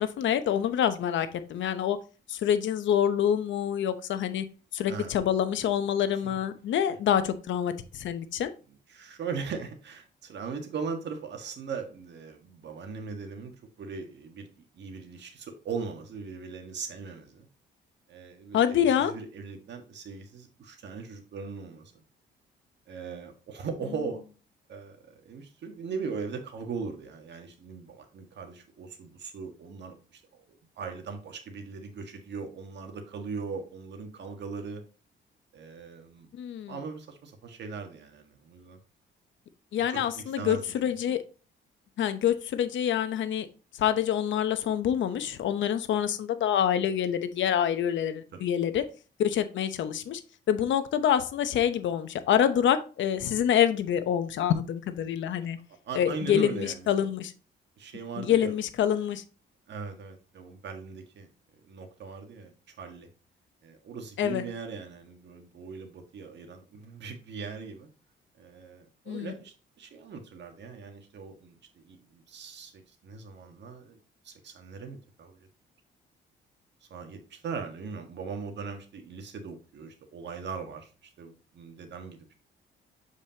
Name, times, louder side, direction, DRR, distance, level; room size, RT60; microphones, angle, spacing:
voice 1, 0.0-2.0 2.3-4.4 4.7-8.5 18.5-19.1 36.3-36.8 39.7-41.2 42.0-43.5 43.7-48.8 49.2-50.2 50.5-55.6 55.9-57.3 58.2-59.2 64.2-64.5 69.1-69.3, left 9 dB, 70° left, 11 dB, 0.8 m, -26 dB
voice 2, 8.9-13.5 13.8-14.5 14.7-17.5 18.1-21.9 22.9-24.2 24.7-30.4 30.8-34.8 35.5-36.3 36.7-38.8 39.9-40.9 48.3-48.5 55.8-56.9 57.8-58.5 59.7-61.3 61.6-63.1 63.6-67.9 68.4-74.0 74.2-75.5 76.9-82.3, right 5 dB, 60° right, 5 dB, 1.5 m, -39 dB
7.3 x 4.9 x 2.8 m, 0.35 s
cardioid pair, 90°, 20 cm